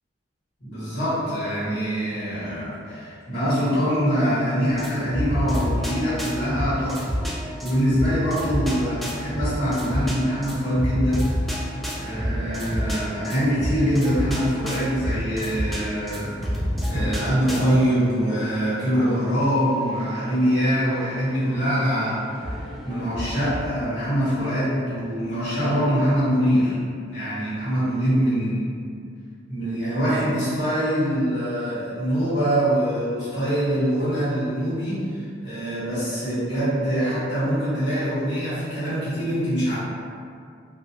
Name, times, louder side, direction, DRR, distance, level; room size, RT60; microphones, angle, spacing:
voice 1, 0.6-7.1 7.6-11.3 11.9-16.4 16.9-26.8 27.1-28.8 29.5-39.8, equal, 80° left, -12 dB, 1.3 m, -24 dB
sound 1, 4.7-23.7, equal, ahead, 0.3 m, -30 dB
2.4 x 2.3 x 2.8 m, 2.3 s
head